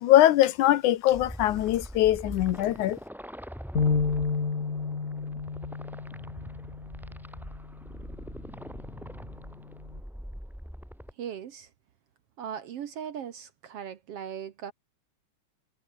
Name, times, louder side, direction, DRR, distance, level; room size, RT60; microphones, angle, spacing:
voice 1, 0.0-3.0, left 13 dB, 75° left, 2.4 m, -22 dB
sound 1, 1.1-11.1, equal, ahead, 1.6 m, -43 dB
sound 2, 3.7-10.0, left 5 dB, 30° left, 2.4 m, -32 dB
voice 2, 11.2-11.7 12.4-14.7, right 8 dB, 60° right, 1.9 m, -38 dB
omnidirectional pair, 3.6 m